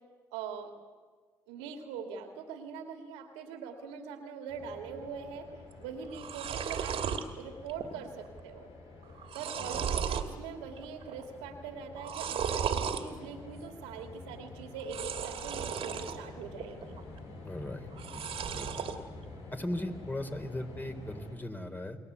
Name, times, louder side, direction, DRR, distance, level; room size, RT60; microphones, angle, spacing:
voice 1, 0.3-0.7 1.5-5.5 5.8-7.0 7.4-8.7 9.3-17.0, right 6 dB, 90° right, 5 dB, 2.7 m, -42 dB
ventilador de mesa, 4.5-21.4, left 2 dB, 75° left, 5.3 m, -49 dB
sound 1, 5.7-5.8 6.0-7.2 7.7-8.1 8.4-8.5 9.0-10.3 10.8-11.2 12.0-13.0 14.8-16.2 16.6-17.2 17.9-19.0, right 7 dB, 70° right, 2.4 m, -35 dB
voice 2, 17.4-18.3 18.5-18.9 19.5-22.0, left 1 dB, 20° left, 6 dB, 4.0 m, -38 dB
29.5 x 21.0 x 8.4 m, 1.5 s
hypercardioid pair, 45°, 10 cm